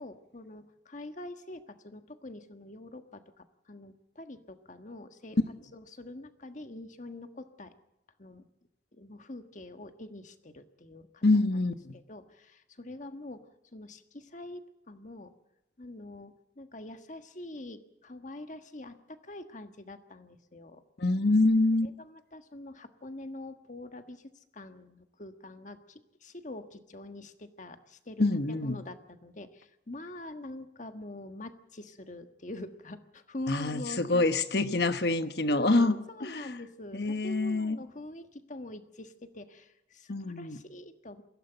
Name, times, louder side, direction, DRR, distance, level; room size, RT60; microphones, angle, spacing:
voice 1, 0.0-5.4 5.7-7.7 8.2-8.4 8.9-11.2 11.9-15.3 15.8-20.8 21.8-34.2 35.5-41.2, left 1 dB, 45° left, 8 dB, 1.5 m, -45 dB
voice 2, 11.2-11.9 21.0-21.9 28.2-28.8 33.5-36.5 36.9-37.8 40.1-40.6, left 2 dB, 60° left, 10 dB, 1.2 m, -26 dB
22.5 x 16.0 x 9.1 m, 0.86 s
head